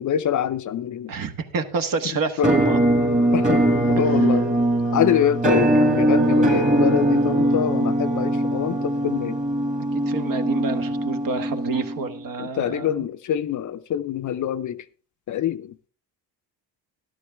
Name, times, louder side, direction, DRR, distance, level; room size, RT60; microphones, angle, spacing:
voice 1, 0.0-1.1 2.4-2.5 3.3-4.5 4.9-9.4 12.4-14.9 15.3-15.8, left 10 dB, 45° left, 11 dB, 0.6 m, -25 dB
voice 2, 1.1-2.8 4.1-4.2 10.1-13.0, right 5 dB, 50° right, 8 dB, 1.4 m, -28 dB
Musical instrument, 2.4-12.2, right 1 dB, 20° right, 2.0 m, -21 dB
12.5 x 12.5 x 3.4 m, 0.38 s
cardioid pair, 130°, 42 cm